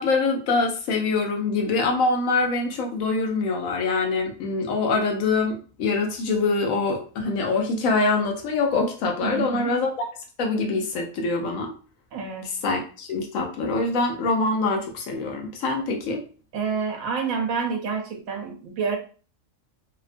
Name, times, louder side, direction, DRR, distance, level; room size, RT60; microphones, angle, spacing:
voice 1, 0.0-9.9 10.4-11.7 12.6-16.2, left 3 dB, 75° left, 2 dB, 1.0 m, -24 dB
voice 2, 9.2-9.8 12.1-12.6 16.5-19.0, right 5 dB, 85° right, 3 dB, 1.1 m, -28 dB
2.8 x 2.1 x 2.5 m, 0.38 s
omnidirectional pair, 1.4 m